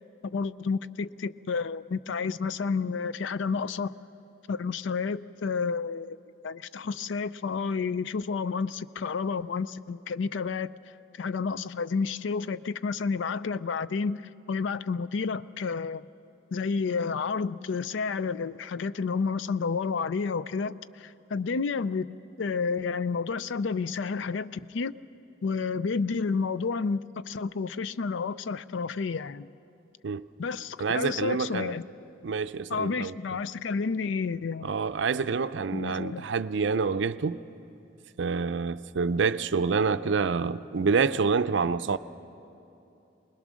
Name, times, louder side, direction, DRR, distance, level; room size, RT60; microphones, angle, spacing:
voice 1, 0.2-3.9 4.5-6.2 6.4-10.7 11.2-14.2 14.5-16.0 16.5-24.9 25.4-29.5 30.4-31.8 32.7-34.7 35.7-36.3, left 5 dB, 75° left, 0.4 m, -30 dB
voice 2, 30.8-31.8 32.2-33.1 34.6-37.4 38.2-42.0, right 5 dB, 70° right, 0.5 m, -27 dB
24.0 x 20.5 x 6.3 m
head